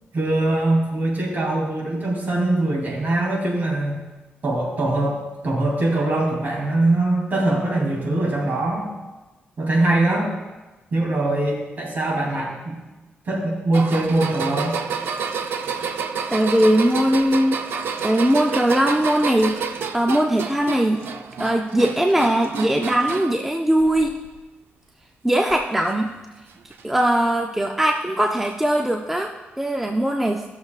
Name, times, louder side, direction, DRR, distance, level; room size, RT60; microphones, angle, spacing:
voice 1, 0.1-4.0 4.4-8.9 9.6-10.3 10.9-12.8 13.2-14.8, right 2 dB, 50° right, -3 dB, 2.9 m, -22 dB
sound 1, 13.7-23.4 23.8-24.4 25.5-25.6 26.7-26.8, right 6 dB, 85° right, 0.5 m, -29 dB
voice 2, 16.3-17.6 18.0-19.6 19.9-21.0 21.4-24.1 25.2-26.1 26.8-30.4, right 1 dB, 5° right, 1 dB, 0.4 m, -20 dB
15.0 x 6.7 x 2.4 m, 1.1 s
wide cardioid pair, 145°, 4 cm